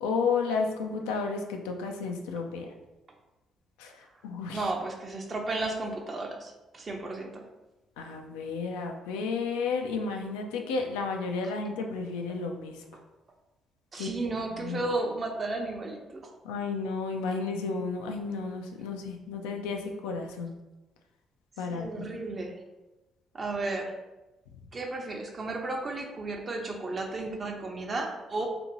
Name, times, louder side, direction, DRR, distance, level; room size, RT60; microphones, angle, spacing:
voice 1, 0.0-2.7 3.8-3.9 4.2-4.6 8.0-12.8 14.0-14.3 14.6-14.8 16.4-20.5 21.6-22.1, left 4 dB, 80° left, 3 dB, 0.3 m, -32 dB
voice 2, 4.5-7.5 11.4-11.5 13.9-16.3 21.7-22.6 23.3-24.0 24.7-28.5, right 2 dB, 40° right, 2 dB, 0.6 m, -33 dB
2.5 x 2.5 x 2.9 m, 1.0 s
hypercardioid pair, 50°, 0 cm